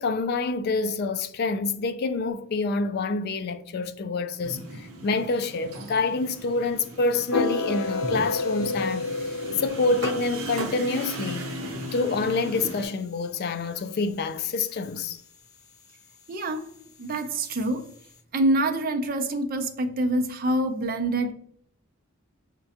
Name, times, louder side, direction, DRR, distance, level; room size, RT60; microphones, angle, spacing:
voice 1, 0.0-11.5 11.9-15.2, left 3 dB, 50° left, 0.3 m, -27 dB
sound 1, 4.4-12.8, right 2 dB, 80° right, 0.7 m, -37 dB
sound 2, 7.3-13.4, left 3 dB, 75° left, 0.7 m, -31 dB
voice 2, 16.3-16.7 17.0-17.9 18.3-21.3, right 1 dB, 45° right, 0.5 m, -26 dB
5.7 x 2.2 x 2.7 m
head